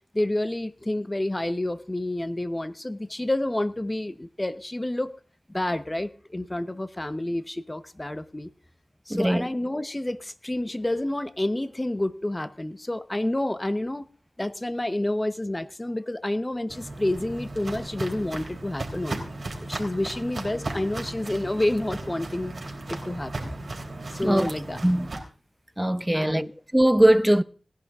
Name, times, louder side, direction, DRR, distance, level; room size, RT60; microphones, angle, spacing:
voice 1, 0.1-5.1 5.5-8.5 9.1-14.1 14.4-19.3 19.6-22.5 22.9-23.5 24.1-24.8 26.1-26.5, left 1 dB, 25° left, 1.0 m, -29 dB
voice 2, 9.1-9.5 24.2-24.5 24.8-25.1 25.8-26.5 26.7-27.4, right 1 dB, 10° right, 0.8 m, -20 dB
Walk footsteps, 16.7-25.2, right 2 dB, 60° right, 3.9 m, -36 dB
18.5 x 11.0 x 3.7 m
cardioid pair, 40°, 0 cm